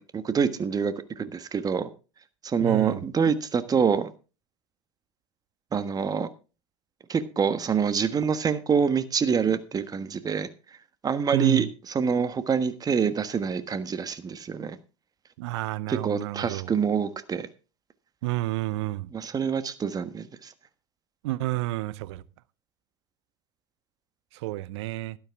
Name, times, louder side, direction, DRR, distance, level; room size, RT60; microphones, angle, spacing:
voice 1, 0.0-1.9 2.4-4.1 5.7-6.3 7.1-10.5 11.0-11.7 11.9-14.8 15.9-17.5 19.1-20.5, right 6 dB, 25° right, 1.4 m, -26 dB
voice 2, 2.6-3.1 11.3-11.7 15.4-16.7 18.2-19.1 21.2-22.2 24.3-25.2, right 17 dB, 65° right, 0.7 m, -30 dB
12.5 x 12.0 x 3.6 m
hypercardioid pair, 90°, 15 cm